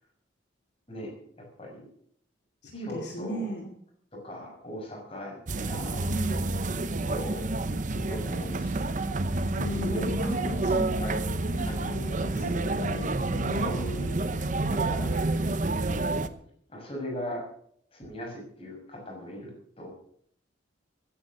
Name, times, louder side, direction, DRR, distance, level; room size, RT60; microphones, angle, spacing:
voice 1, 0.9-1.9 2.7-3.5 4.1-6.0 6.8-7.4 7.8-9.1 9.7-10.3 10.7-11.2 11.6-11.9 12.3-13.0 13.5-16.3 16.7-17.5 17.9-19.9, equal, 30° left, 0 dB, 6.1 m, -40 dB
voice 2, 2.6-3.7 6.1-6.4 9.6-14.2, equal, 65° left, 1 dB, 2.5 m, -36 dB
sound 1, 5.5-16.3, right 2 dB, 45° right, 0.8 m, -29 dB
16.0 x 10.0 x 6.5 m, 0.65 s
head